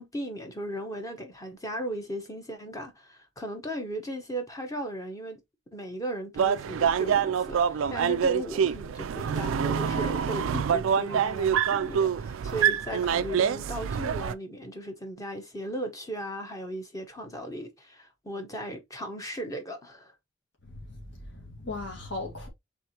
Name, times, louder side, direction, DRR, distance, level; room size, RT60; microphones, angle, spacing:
voice 1, 0.0-5.4 5.7-20.1, right 1 dB, 15° left, 1.0 m, -36 dB
sound 1, 6.4-14.3, right 7 dB, 75° right, 0.3 m, -26 dB
voice 2, 20.6-22.5, left 2 dB, 60° left, 1.8 m, -38 dB
4.6 x 3.6 x 2.9 m
head